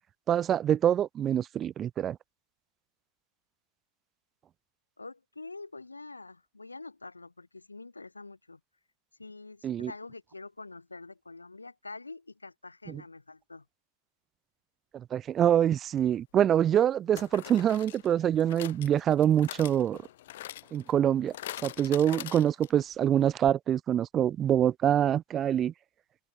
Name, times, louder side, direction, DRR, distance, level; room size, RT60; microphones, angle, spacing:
voice 1, 0.3-2.2 9.6-9.9 12.9-13.0 14.9-20.0 20.7-21.3 21.6-25.7, right 10 dB, 25° right, 1.1 m, -25 dB
voice 2, 5.0-8.6 9.2-13.6, left 3 dB, 80° left, 2.8 m, -46 dB
sound 1, 15.9-16.0 17.2-22.9 23.2-23.3 23.5-23.6, left 14 dB, 55° left, 1.2 m, -44 dB
figure-of-eight pair, 90°, 0 cm